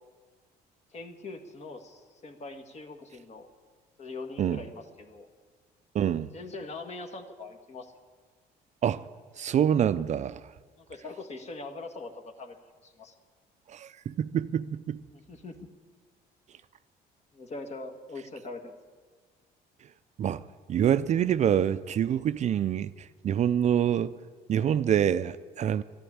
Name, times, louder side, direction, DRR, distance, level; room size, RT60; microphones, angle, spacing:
voice 1, 0.9-3.5 4.0-5.3 6.3-7.9 10.8-12.6 12.8-13.1 15.1-15.7 17.3-18.8 24.6-24.8, left 3 dB, 40° left, 1.8 m, -42 dB
voice 2, 5.9-6.3 8.8-9.0 9.4-10.4 13.7-15.0 20.2-20.4 20.7-22.9 23.2-24.2 24.5-25.8, right 9 dB, 45° right, 0.4 m, -26 dB
13.0 x 11.5 x 8.7 m
cardioid pair, 110°, 17 cm